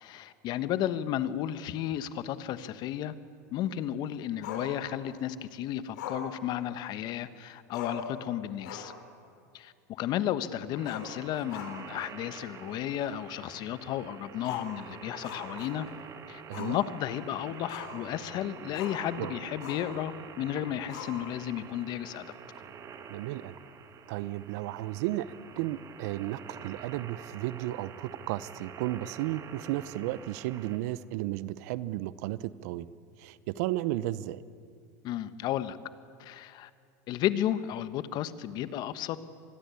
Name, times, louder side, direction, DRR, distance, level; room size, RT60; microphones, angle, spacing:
voice 1, 0.0-3.1 3.5-8.9 9.5-15.9 16.3-22.3 35.0-35.8 36.2-36.7 37.1-39.2, left 11 dB, 50° left, 13 dB, 1.3 m, -33 dB
Growling, 4.4-5.2 5.9-7.2 7.5-7.6 7.7-8.1 8.5-9.0 9.3-9.4 10.8-12.0 12.3-12.4 13.0-13.1 14.4-16.0 16.5-16.8 17.1-18.1 18.7-19.0 19.6-20.0 20.9-21.5, left 6 dB, 80° left, 4.4 m, -42 dB
sound 1, 10.8-30.8, right 6 dB, 35° right, 2.0 m, -47 dB
voice 2, 23.1-23.6 24.1-32.9 33.2-34.4, right 15 dB, 70° right, 17 dB, 0.9 m, -34 dB
25.5 x 20.5 x 8.5 m, 2.3 s
supercardioid pair, 105°, 9 cm